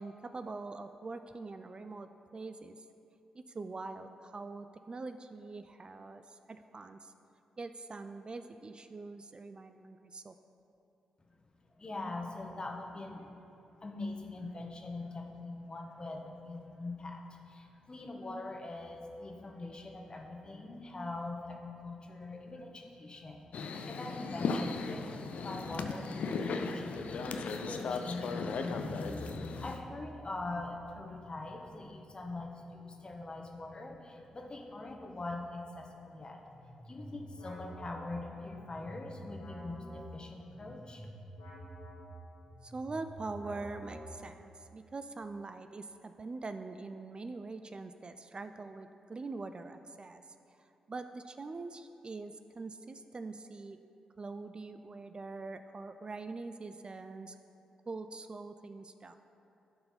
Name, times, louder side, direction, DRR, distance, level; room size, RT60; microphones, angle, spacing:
voice 1, 0.0-2.8 3.3-7.1 7.6-10.3 42.6-50.2 50.6-53.8 54.2-57.4 57.9-59.1, right 3 dB, 40° right, 9 dB, 0.4 m, -43 dB
voice 2, 11.8-13.3 13.8-36.4 36.8-41.1, left 2 dB, 35° left, 1 dB, 1.2 m, -43 dB
sound 1, 23.5-29.8, left 4 dB, 65° left, 0.5 m, -37 dB
sound 2, 36.4-44.5, equal, 85° left, 1.9 m, -49 dB
12.0 x 4.4 x 4.2 m, 2.9 s
hypercardioid pair, 40°, 2 cm